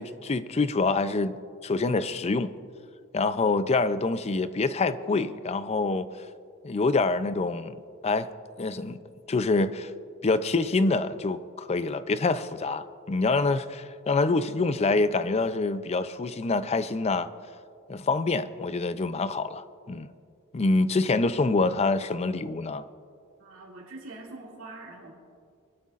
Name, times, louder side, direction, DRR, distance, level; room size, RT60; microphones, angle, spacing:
voice 1, 0.0-2.5 3.1-6.1 6.6-7.8 8.0-8.3 8.6-9.0 9.3-9.9 10.2-17.3 17.9-20.1 20.5-22.9, left 3 dB, 30° left, 0.4 m, -26 dB
voice 2, 23.4-25.1, right 2 dB, 65° right, 2.5 m, -44 dB
21.0 x 12.5 x 2.5 m
head